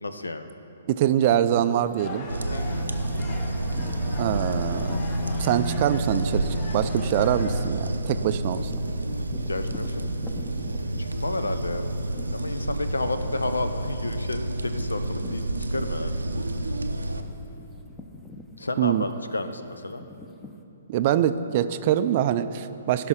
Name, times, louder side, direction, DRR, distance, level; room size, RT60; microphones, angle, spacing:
voice 1, 0.0-0.5 2.5-2.9 9.1-10.0 11.0-11.9 12.3-16.2 18.6-20.0, left 2 dB, 80° left, 10 dB, 0.6 m, -31 dB
voice 2, 0.9-2.3 4.2-5.0 5.4-8.8 18.8-19.1 20.9-23.1, right 11 dB, 40° right, 12 dB, 0.4 m, -24 dB
sound 1, 1.3-16.4 16.8-20.6, left 2 dB, 15° left, 0.7 m, -48 dB
sound 2, 2.0-7.6, left 3 dB, 35° left, 0.9 m, -41 dB
sound 3, 2.3-17.2, right 1 dB, 85° right, 0.6 m, -29 dB
16.0 x 6.0 x 3.8 m, 3.0 s
figure-of-eight pair, 125°, 0 cm